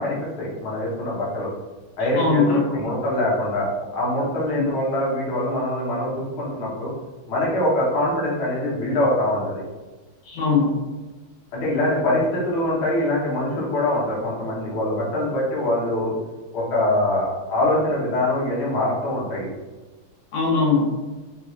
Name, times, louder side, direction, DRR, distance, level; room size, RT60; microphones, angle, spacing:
voice 1, 0.0-1.5 2.0-2.4 2.7-6.9 7.3-9.6 11.5-16.1 16.5-19.5, left 1 dB, 60° left, -5 dB, 1.4 m, -23 dB
voice 2, 2.2-2.9 4.5-4.7 10.3-10.8 20.3-20.9, left 4 dB, 90° left, -2 dB, 1.6 m, -20 dB
4.2 x 2.3 x 2.3 m, 1.2 s
omnidirectional pair, 2.3 m